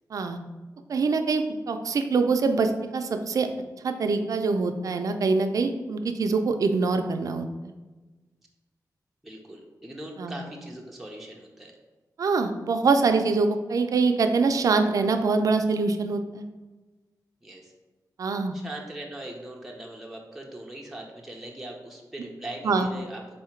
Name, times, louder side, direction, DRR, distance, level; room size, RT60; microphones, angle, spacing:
voice 1, 0.9-3.5 3.8-7.7 10.2-10.4 12.2-16.4 18.2-18.5 22.6-22.9, right 4 dB, 55° right, 7 dB, 0.4 m, -24 dB
voice 2, 9.2-11.7 17.4-17.7 18.5-23.2, right 1 dB, 5° right, -1 dB, 0.5 m, -40 dB
4.1 x 2.8 x 4.4 m, 1.2 s
wide cardioid pair, 150°, 7 cm